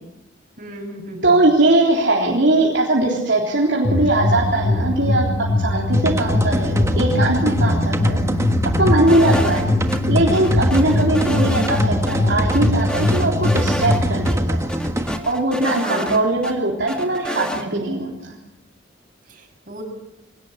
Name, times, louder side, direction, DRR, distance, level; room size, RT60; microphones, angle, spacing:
voice 1, 0.6-1.5 15.6-16.2 17.3-17.5 19.3-19.8, right 1 dB, 45° right, 2 dB, 6.1 m, -34 dB
voice 2, 1.2-5.2 5.6-8.2 8.8-9.7 10.1-14.7 15.3-18.3, right 2 dB, 65° right, -3 dB, 3.7 m, -20 dB
sound 1, 3.8-14.3, left 2 dB, 30° left, 1.0 m, -21 dB
sound 2, 5.9-15.2, equal, 15° right, 1.4 m, -25 dB
sound 3, 9.1-10.0 10.3-11.8 12.1-12.2 12.5-14.0 14.2-14.3 14.7-16.5 16.9-17.6, equal, 5° left, 2.3 m, -29 dB
23.5 x 18.0 x 8.7 m, 0.89 s
head